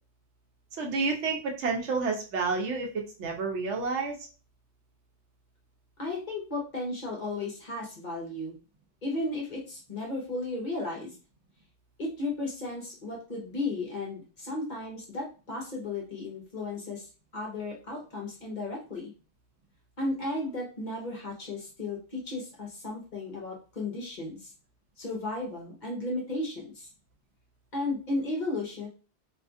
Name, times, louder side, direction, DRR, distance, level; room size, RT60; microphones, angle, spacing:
voice 1, 0.8-4.2, right 4 dB, 80° right, 1 dB, 1.0 m, -30 dB
voice 2, 6.0-8.5 9.0-11.1 12.0-17.1 17.3-19.1 20.0-24.5 25.0-26.9 27.7-28.9, left 2 dB, 45° left, -2 dB, 0.9 m, -34 dB
2.7 x 2.4 x 2.5 m, 0.33 s
omnidirectional pair, 1.2 m